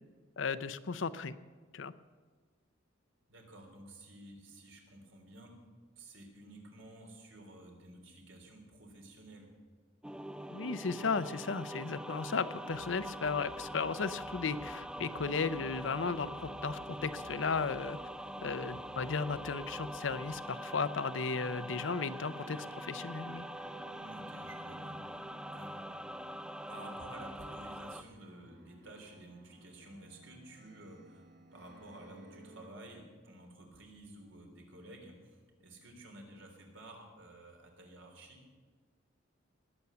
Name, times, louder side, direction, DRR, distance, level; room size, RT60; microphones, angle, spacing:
voice 1, 0.4-1.4 1.7-1.9 10.5-18.0 18.4-23.5, left 5 dB, 70° left, 14 dB, 0.6 m, -35 dB
voice 2, 3.3-5.5 6.0-9.5 23.9-25.9 26.7-31.3 31.5-38.4, right 1 dB, 75° right, 2 dB, 3.5 m, -52 dB
sound 1, 10.0-28.0, equal, 5° right, 0.3 m, -44 dB
sound 2, 12.7-20.4, equal, 20° right, 0.9 m, -55 dB
sound 3, 21.8-32.7, right 1 dB, 55° right, 1.2 m, -58 dB
20.0 x 8.2 x 6.9 m, 1.5 s
head